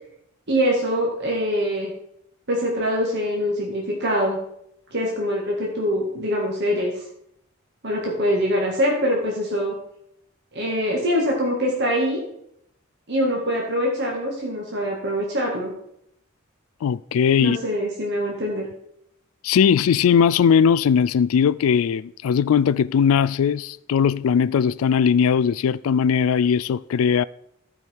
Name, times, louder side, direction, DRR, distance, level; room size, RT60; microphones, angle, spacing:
voice 1, 0.5-1.9 2.5-4.4 4.9-6.9 7.8-9.7 10.5-12.2 13.1-15.7 17.4-18.7, equal, 55° right, 2.0 m, -24 dB
voice 2, 16.8-17.6 19.4-27.2, left 7 dB, 80° left, 0.3 m, -19 dB
13.5 x 5.1 x 4.6 m
head